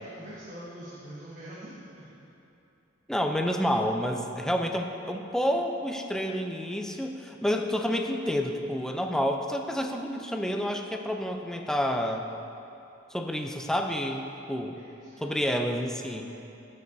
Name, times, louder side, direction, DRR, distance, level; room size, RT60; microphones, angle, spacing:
voice 1, 0.0-2.0 14.7-15.3, right 1 dB, 45° right, -8 dB, 1.2 m, -44 dB
voice 2, 3.1-12.2 13.1-14.8 15.2-16.3, equal, 5° left, 3 dB, 0.4 m, -29 dB
15.5 x 5.5 x 2.7 m, 3.0 s
head